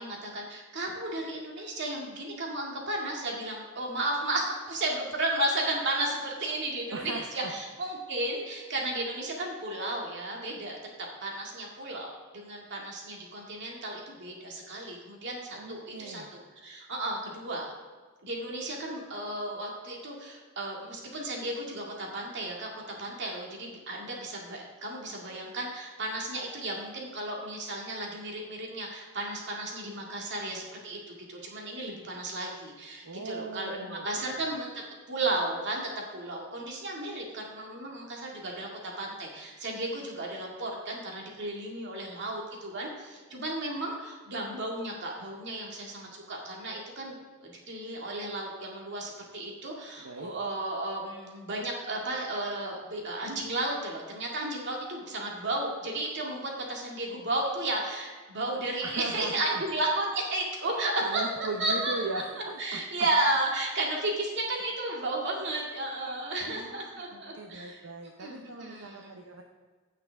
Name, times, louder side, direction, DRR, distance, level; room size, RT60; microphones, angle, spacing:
voice 1, 0.0-17.7 18.2-22.7 23.0-34.7 35.1-38.7 39.0-62.0 62.6-67.8 68.2-69.1, right 2 dB, 55° right, -1 dB, 2.1 m, -33 dB
voice 2, 6.9-7.5 15.5-16.3 33.0-34.4 50.0-50.3 58.8-59.6 60.7-63.1 66.4-66.8 67.1-69.4, right 3 dB, 75° right, 2 dB, 0.8 m, -39 dB
15.5 x 5.8 x 3.5 m, 1.5 s
head